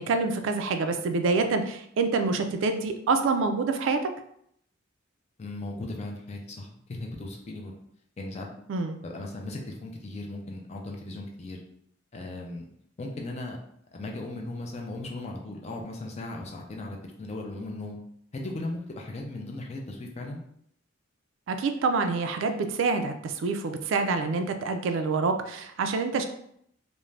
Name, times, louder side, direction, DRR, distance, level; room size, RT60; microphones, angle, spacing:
voice 1, 0.0-4.1 8.7-9.0 21.5-26.2, right 4 dB, 70° right, 7 dB, 0.3 m, -26 dB
voice 2, 5.4-7.7 8.2-8.5 9.0-11.6 12.1-12.6 13.0-13.6 13.9-18.0 18.3-20.4, left 2 dB, 35° left, 1 dB, 0.4 m, -37 dB
2.4 x 2.1 x 3.1 m, 0.71 s
head